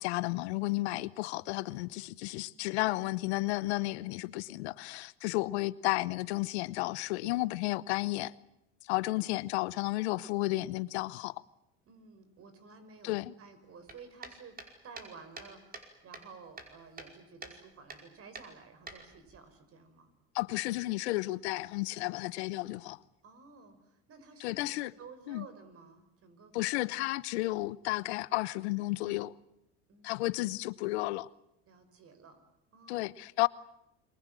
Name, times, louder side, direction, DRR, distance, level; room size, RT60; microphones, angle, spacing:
voice 1, 0.0-8.3 8.9-11.3 13.0-13.3 20.3-23.0 24.4-24.9 25.3-25.4 26.5-29.3 30.0-31.3 32.9-33.5, left 19 dB, 85° left, 1.0 m, -32 dB
voice 2, 8.9-9.3 11.8-14.6 14.8-20.1 23.2-26.7 29.9-30.3 31.7-32.4 32.7-33.1, right 4 dB, 45° right, 5.9 m, -53 dB
sound 1, 13.9-15.9 16.1-17.1 17.4-17.6 17.9-18.0 18.4-19.4, right 3 dB, 30° right, 5.4 m, -47 dB
28.5 x 23.0 x 7.7 m
supercardioid pair, 95°, 32 cm